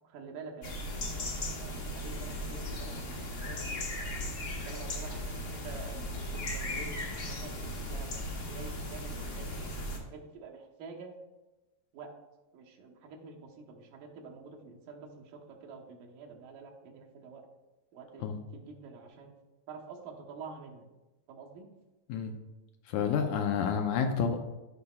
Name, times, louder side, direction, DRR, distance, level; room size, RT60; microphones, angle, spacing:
voice 1, 0.0-0.8 1.1-3.8 4.6-8.1 8.5-9.5 10.1-11.1 11.9-12.1 12.5-17.5 17.9-18.3 18.5-19.3 19.7-20.9 21.3-21.7, right 5 dB, 80° right, 0 dB, 2.7 m, -48 dB
sound 1, 0.6-10.0, left 1 dB, 60° left, 1.1 m, -37 dB
voice 2, 22.9-24.4, left 6 dB, 75° left, 4 dB, 1.9 m, -29 dB
13.0 x 5.3 x 2.3 m, 1.1 s
omnidirectional pair, 3.7 m